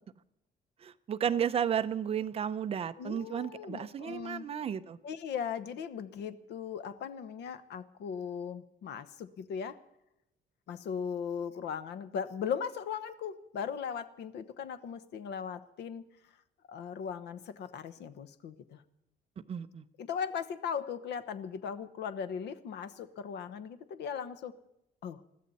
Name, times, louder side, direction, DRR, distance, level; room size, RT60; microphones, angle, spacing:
voice 1, 0.8-5.0 19.5-19.8, right 8 dB, 35° right, 0.6 m, -33 dB
voice 2, 3.0-4.4 5.0-9.8 10.7-16.0 16.7-18.8 20.0-24.5 25.0-25.2, left 7 dB, 80° left, 1.1 m, -38 dB
21.0 x 14.0 x 4.2 m
cardioid pair, 180°, 18 cm